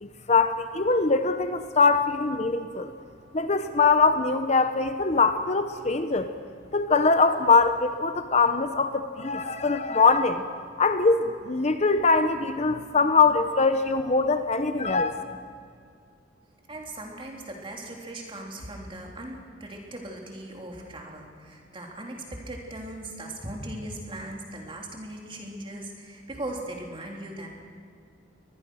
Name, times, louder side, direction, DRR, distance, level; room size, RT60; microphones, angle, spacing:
voice 1, 0.0-2.9 3.3-6.3 6.7-10.4 10.8-15.2, left 4 dB, 35° left, 9 dB, 0.8 m, -22 dB
voice 2, 16.7-27.5, right 1 dB, 25° right, 0 dB, 3.4 m, -38 dB
24.0 x 20.0 x 6.3 m, 2.3 s
head